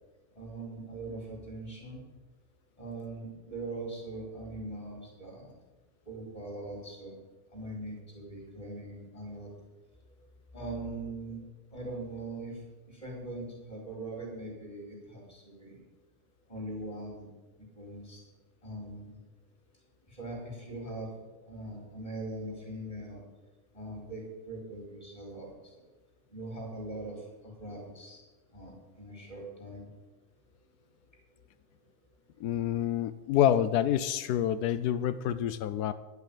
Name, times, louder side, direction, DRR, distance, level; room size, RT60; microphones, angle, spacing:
voice 1, 0.3-2.0 2.8-5.5 6.1-7.2 7.5-9.5 10.5-11.4 11.7-12.6 12.9-15.8 16.5-17.3 17.8-18.2 18.6-19.2 20.1-21.1 21.5-23.2 23.7-25.5 26.3-28.2 28.5-29.8, right 2 dB, 20° left, -2 dB, 4.8 m, -41 dB
voice 2, 32.4-35.9, left 10 dB, 90° left, 14 dB, 1.1 m, -27 dB
11.0 x 8.1 x 9.0 m, 1.2 s
omnidirectional pair, 1.6 m